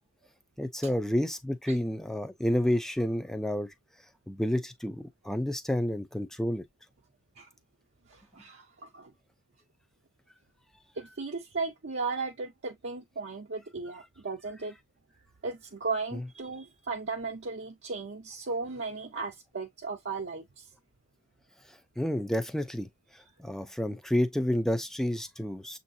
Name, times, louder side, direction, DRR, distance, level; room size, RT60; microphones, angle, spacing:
voice 1, 0.6-3.7 4.3-6.6 16.1-16.2 22.0-22.9 23.4-25.8, left 1 dB, ahead, 0.5 m, -30 dB
voice 2, 8.1-9.1 10.9-14.8 15.4-20.7, right 4 dB, 50° right, 0.7 m, -36 dB
7.0 x 2.7 x 2.7 m
head